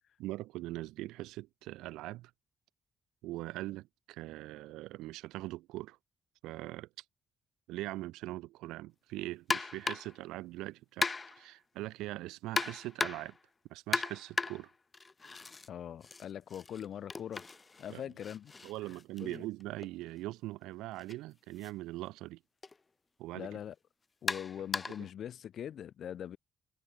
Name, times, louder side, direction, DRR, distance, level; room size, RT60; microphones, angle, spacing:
voice 1, 0.2-2.3 3.2-6.0 6.4-6.9 7.7-11.1 11.4-13.4 13.7-14.7 17.9-18.0 18.6-22.4 23.2-23.5, right 17 dB, 90° right, 6.5 m, -41 dB
sound 1, 9.5-10.2 11.0-11.5 12.6-13.4 13.9-15.7 16.0-19.9 21.0-21.1 21.6-21.7 22.6-22.8 24.3-25.1, left 4 dB, 30° left, 0.7 m, -37 dB
voice 2, 15.7-17.5 17.8-18.5 18.9-19.4 23.3-23.7 24.2-26.4, left 9 dB, 65° left, 4.6 m, -42 dB
supercardioid pair, 70°, 0 cm